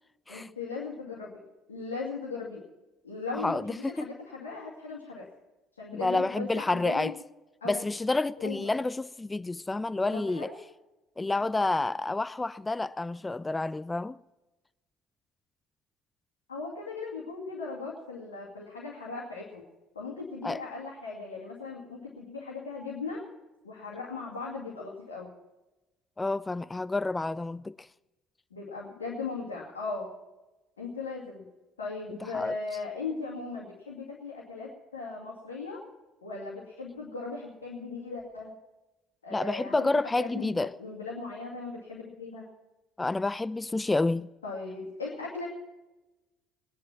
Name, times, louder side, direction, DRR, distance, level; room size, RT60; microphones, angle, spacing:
voice 1, 0.3-1.3 1.7-2.6 3.0-5.3 5.8-7.1 7.6-7.8 8.4-8.7 10.1-10.6 16.5-19.6 19.9-23.2 23.6-25.3 28.5-30.1 30.8-31.4 31.8-35.8 36.2-38.5 39.2-39.9 40.2-42.5 44.4-45.5, left 4 dB, 85° left, 2.3 m, -38 dB
voice 2, 3.3-4.1 5.9-7.1 7.7-10.5 11.2-14.2 20.4-20.6 26.2-27.9 32.3-32.5 39.3-40.7 43.0-44.3, left 2 dB, 20° left, 0.4 m, -29 dB
20.0 x 10.5 x 5.9 m
figure-of-eight pair, 55°, 0 cm